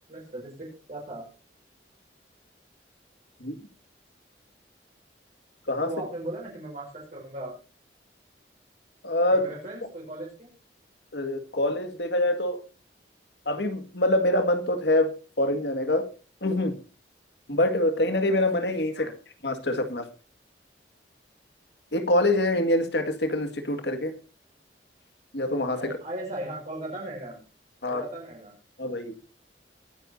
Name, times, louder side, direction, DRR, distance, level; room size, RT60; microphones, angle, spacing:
voice 1, 0.1-1.3 5.8-7.5 9.3-10.5 18.9-19.2 25.8-27.4 27.9-28.5, right 1 dB, 40° right, -3 dB, 5.5 m, -37 dB
voice 2, 9.0-9.5 11.1-12.6 13.5-16.0 16.4-16.7 17.5-19.1 19.4-20.0 21.9-24.1 25.3-25.8 27.8-28.0 28.8-29.1, left 1 dB, 70° left, 8 dB, 2.0 m, -25 dB
23.0 x 10.0 x 2.7 m, 0.33 s
head